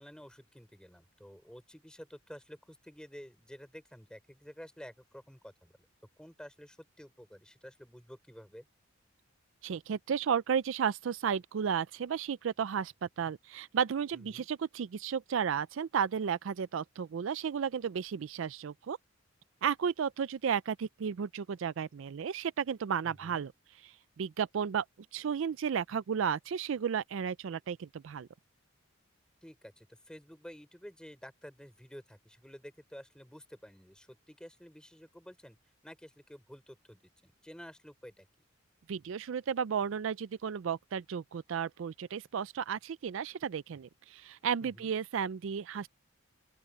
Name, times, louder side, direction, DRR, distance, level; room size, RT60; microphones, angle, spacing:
voice 1, 0.0-5.9 6.2-8.7 14.1-14.5 23.0-23.4 29.4-35.6 35.8-38.3 44.6-44.9, equal, 5° left, 4.3 m, -51 dB
voice 2, 9.6-19.0 19.6-23.5 23.8-24.8 25.1-28.3 38.9-45.9, right 7 dB, 65° right, 0.4 m, -33 dB
open air
head